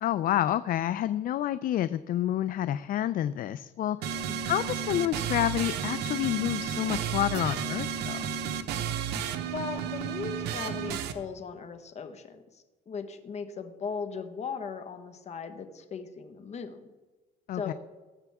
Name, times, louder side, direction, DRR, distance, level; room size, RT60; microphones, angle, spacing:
voice 1, 0.0-8.2 17.5-17.7, left 12 dB, 55° left, 14 dB, 0.5 m, -29 dB
sound 1, 4.0-11.1, right 7 dB, 85° right, 1.0 m, -32 dB
voice 2, 9.5-16.8 17.5-17.7, left 5 dB, 40° left, 8 dB, 1.4 m, -38 dB
19.5 x 8.1 x 3.6 m, 1.3 s
cardioid pair, 110°, 17 cm